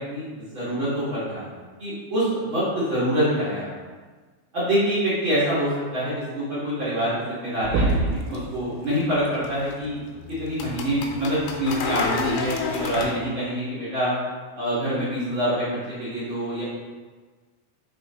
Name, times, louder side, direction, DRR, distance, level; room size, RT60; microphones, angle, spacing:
voice 1, 0.0-1.5 1.8-3.7 4.5-10.0 10.4-14.1 14.5-16.6, equal, 45° right, -12 dB, 1.6 m, -26 dB
sound 1, 7.6-8.3 10.0-10.1 11.9-12.1 12.9-13.0, right 2 dB, 80° right, 2.6 m, -24 dB
sound 2, 7.8-13.1, left 5 dB, 80° left, 2.6 m, -32 dB
6.1 x 5.6 x 3.0 m, 1.4 s
omnidirectional pair, 5.0 m